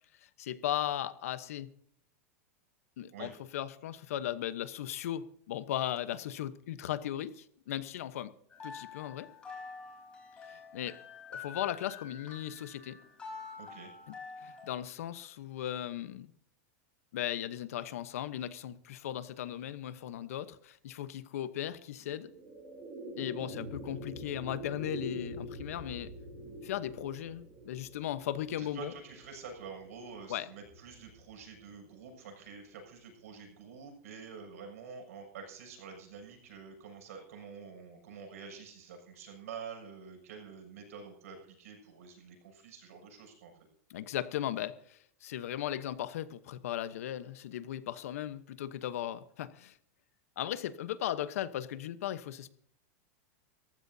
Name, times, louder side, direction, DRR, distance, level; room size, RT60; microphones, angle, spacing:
voice 1, 0.2-1.7 3.0-8.3 8.6-9.3 10.5-11.0 11.3-13.0 14.4-16.3 17.1-22.3 23.2-26.1 26.6-28.9 30.3-30.5 43.9-49.8 50.4-52.5, left 11 dB, 80° left, 13 dB, 1.0 m, -37 dB
sound 1, 8.5-14.7, left 5 dB, 15° left, 3.9 m, -47 dB
voice 2, 13.6-13.9 28.6-43.5, right 6 dB, 85° right, 3 dB, 7.1 m, -48 dB
sound 2, 21.9-32.4, equal, 25° right, 7.8 m, -46 dB
22.0 x 15.0 x 2.8 m, 0.66 s
supercardioid pair, 170°, 8 cm